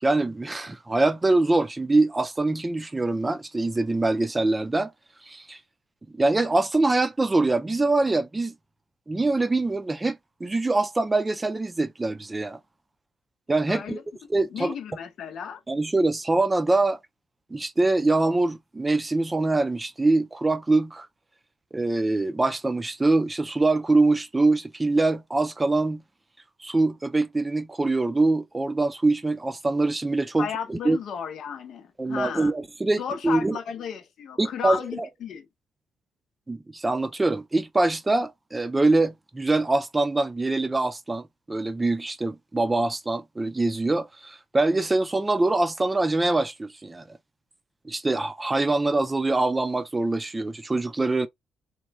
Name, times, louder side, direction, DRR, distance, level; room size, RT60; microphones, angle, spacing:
voice 1, 0.0-4.9 5.2-5.6 6.1-8.5 9.1-12.6 13.5-14.0 14.3-14.7 15.7-17.0 17.5-21.1 21.7-26.0 26.6-31.0 32.0-33.6 34.4-35.1 36.5-47.2 47.8-51.3, right 2 dB, 20° right, 0.4 m, -24 dB
voice 2, 13.7-14.0 14.5-15.6 30.4-32.5 33.0-35.5, left 7 dB, 70° left, 0.7 m, -33 dB
3.0 x 2.3 x 3.4 m
cardioid pair, 90°, 0 cm